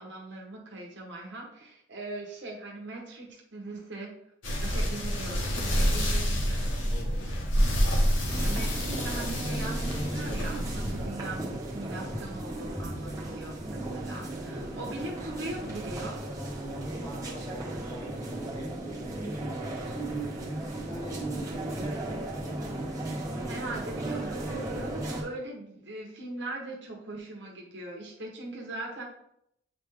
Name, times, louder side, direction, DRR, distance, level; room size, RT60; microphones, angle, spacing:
voice 1, 0.0-4.1 4.5-6.7 8.2-16.2 23.5-29.0, right 2 dB, 60° right, 0 dB, 1.1 m, -40 dB
sound 1, 4.4-11.1, equal, 70° left, 1.2 m, -28 dB
voice 2, 6.9-7.2 13.1-13.4 13.7-14.1 17.0-20.2 20.8-22.8, equal, 20° left, -1 dB, 1.3 m, -46 dB
sound 2, 8.3-25.2, right 1 dB, 15° right, 1.3 m, -35 dB
8.7 x 3.3 x 3.5 m, 0.76 s
head